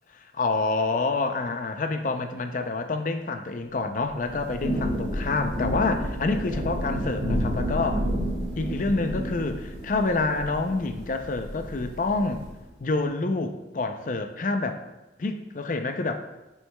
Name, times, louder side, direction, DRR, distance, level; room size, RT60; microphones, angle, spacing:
voice 1, 0.4-8.1 8.6-12.4 12.8-14.8 15.2-16.2, left 3 dB, 45° left, 7 dB, 0.5 m, -27 dB
Thunder / Rain, 4.0-12.6, equal, 75° right, 1.7 m, -31 dB
7.7 x 6.3 x 2.2 m, 1.0 s
head